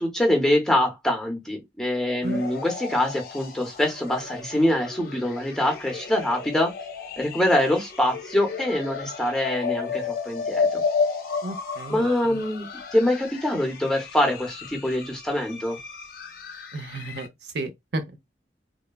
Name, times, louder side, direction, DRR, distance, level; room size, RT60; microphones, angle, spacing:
voice 1, 0.0-6.7 7.2-10.8 11.9-15.8, left 1 dB, 5° left, 0.7 m, -24 dB
sound 1, 2.2-17.3, left 5 dB, 55° left, 0.5 m, -33 dB
voice 2, 11.4-12.4 16.7-18.2, right 2 dB, 65° right, 0.6 m, -33 dB
3.0 x 2.2 x 2.2 m
head